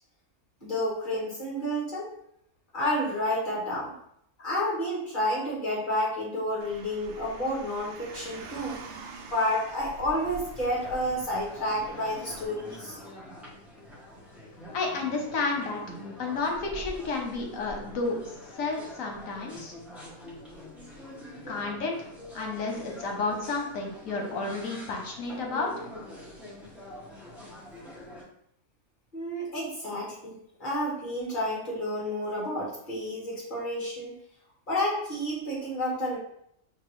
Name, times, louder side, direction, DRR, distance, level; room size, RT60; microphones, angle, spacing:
voice 1, 0.6-2.1 2.7-3.9 4.4-8.8 9.2-13.0 29.1-30.3 30.6-34.1 34.7-36.2, left 1 dB, 40° left, -5 dB, 1.7 m, -30 dB
Car, 6.6-12.5, right 3 dB, 65° right, 0.8 m, -45 dB
sound 1, 10.1-28.2, equal, ahead, 0.8 m, -45 dB
voice 2, 14.7-15.8 16.2-18.2 18.6-19.7 21.5-25.7, left 3 dB, 80° left, 1 dB, 1.3 m, -31 dB
5.1 x 2.6 x 3.1 m, 0.71 s
omnidirectional pair, 1.4 m